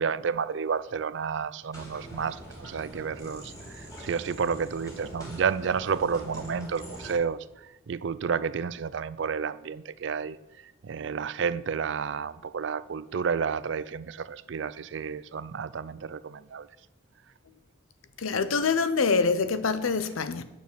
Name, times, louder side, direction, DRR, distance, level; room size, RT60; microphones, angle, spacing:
voice 1, 0.0-7.4 7.9-10.4 10.8-16.7, right 6 dB, 60° right, 0.4 m, -31 dB
sound 1, 1.7-7.1, right 1 dB, 15° left, 2.5 m, -43 dB
voice 2, 18.2-20.4, left 4 dB, 90° left, 0.7 m, -25 dB
9.2 x 6.6 x 6.8 m
head